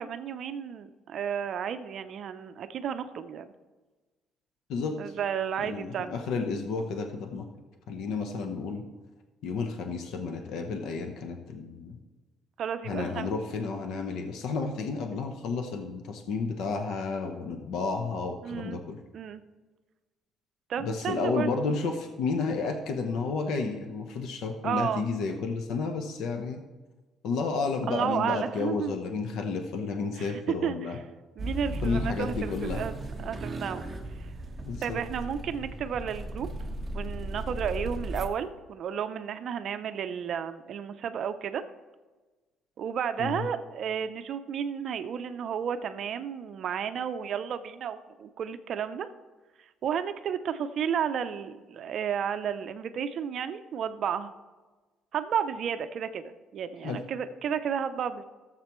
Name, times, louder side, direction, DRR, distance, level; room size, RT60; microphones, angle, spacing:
voice 1, 0.0-3.5 5.0-6.2 12.6-13.3 18.4-18.8 19.1-19.4 20.7-21.5 24.6-25.0 27.9-29.0 30.2-31.0 31.4-32.9 33.2-33.8 34.8-36.5 36.9-41.6 42.8-49.1 49.8-54.3 55.1-56.2 56.5-58.2, right 8 dB, 50° right, 10 dB, 0.5 m, -32 dB
voice 2, 5.6-7.5 7.9-8.8 9.4-12.0 12.8-19.0 20.8-26.6 27.2-31.0 31.8-32.8 34.6-35.0 43.2-43.5 56.8-57.0, left 4 dB, 70° left, 5 dB, 0.8 m, -31 dB
sound 1, 31.4-38.3, right 1 dB, 15° right, 1.0 m, -36 dB
15.0 x 7.4 x 3.1 m, 1.2 s
cardioid pair, 135°, 0 cm